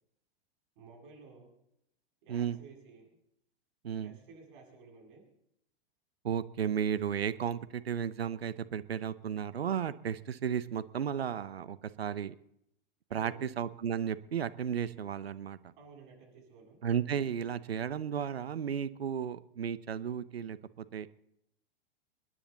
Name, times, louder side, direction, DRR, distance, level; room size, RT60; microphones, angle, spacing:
voice 1, 0.8-1.5 2.2-3.2 4.0-5.2 13.1-13.5 15.8-16.8, right 4 dB, 60° right, -1 dB, 7.4 m, -54 dB
voice 2, 3.8-4.2 6.2-12.3 13.1-15.7 16.8-21.1, right 8 dB, 85° right, 14 dB, 0.8 m, -34 dB
28.0 x 10.0 x 3.9 m, 0.77 s
hypercardioid pair, 105°, 30 cm